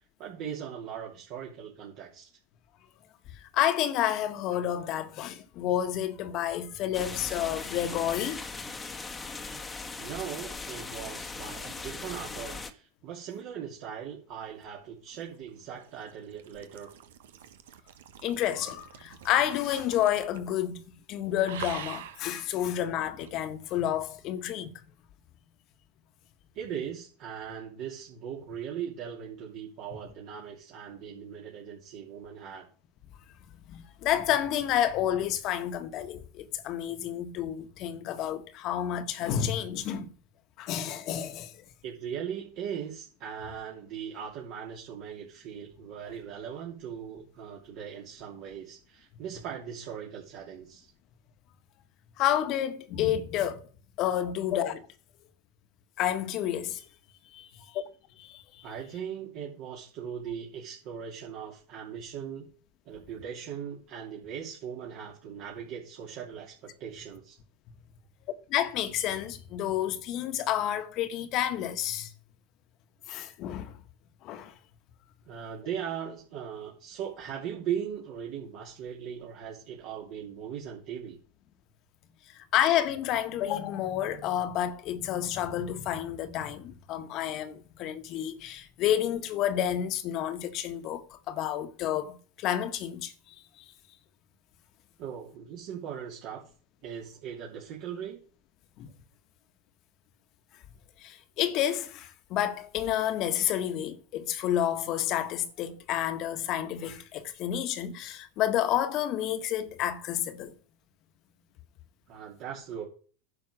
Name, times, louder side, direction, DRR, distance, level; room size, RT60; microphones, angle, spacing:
voice 1, 0.2-2.3 10.0-16.9 26.5-32.7 41.8-50.9 58.6-62.5 62.8-67.4 75.3-81.2 95.0-96.4 96.8-98.2 112.1-112.9, right 8 dB, 55° right, 2.8 m, -39 dB
voice 2, 3.4-8.4 18.2-20.8 21.1-24.7 33.7-40.1 40.6-41.6 52.2-53.7 54.0-54.8 56.0-56.9 57.3-57.8 58.2-58.6 68.5-72.1 73.1-73.8 74.2-74.5 82.3-93.6 98.8-98.9 101.0-110.5, left 11 dB, 50° left, 1.5 m, -30 dB
sound 1, 6.9-12.7, left 4 dB, 15° left, 1.3 m, -39 dB
sound 2, 14.8-20.6 20.8-21.1 21.4-22.3 23.2-23.3, right 10 dB, 70° right, 1.2 m, -45 dB
10.0 x 5.2 x 6.1 m
hypercardioid pair, 95°, 0 cm